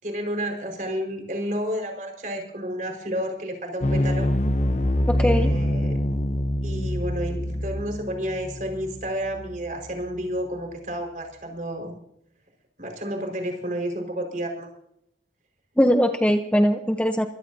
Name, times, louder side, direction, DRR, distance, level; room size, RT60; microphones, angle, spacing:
voice 1, 0.0-4.3 5.2-6.0 6.6-11.9 12.8-14.7, equal, 45° right, 2 dB, 5.0 m, -31 dB
sound 1, 3.8-10.2, left 1 dB, 40° left, 0.9 m, -25 dB
voice 2, 5.1-5.5 15.8-17.3, equal, 5° left, 6 dB, 0.8 m, -20 dB
25.0 x 16.0 x 2.8 m, 0.75 s
head